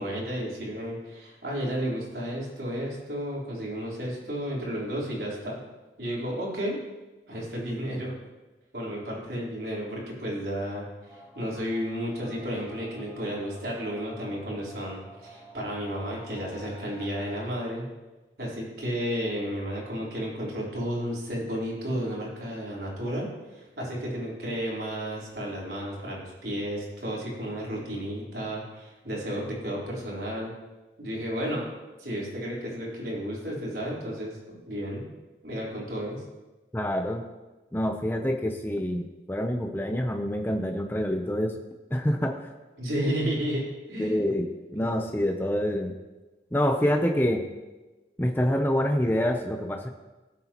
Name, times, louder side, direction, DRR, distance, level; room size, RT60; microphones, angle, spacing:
voice 1, 0.0-5.6 6.0-6.8 7.3-8.1 8.7-17.8 18.4-30.5 31.0-31.7 32.0-35.0 35.4-36.2 42.8-43.6 43.9-44.2 44.7-44.8, equal, 70° right, -5 dB, 3.8 m, -32 dB
sound 1, 11.1-17.5, right 1 dB, 20° right, 3.3 m, -49 dB
voice 2, 36.7-37.2 37.7-41.5 41.9-42.4 44.0-45.9 46.5-47.4 48.2-49.9, equal, 10° left, 3 dB, 0.6 m, -26 dB
18.0 x 8.1 x 3.0 m, 1.2 s
head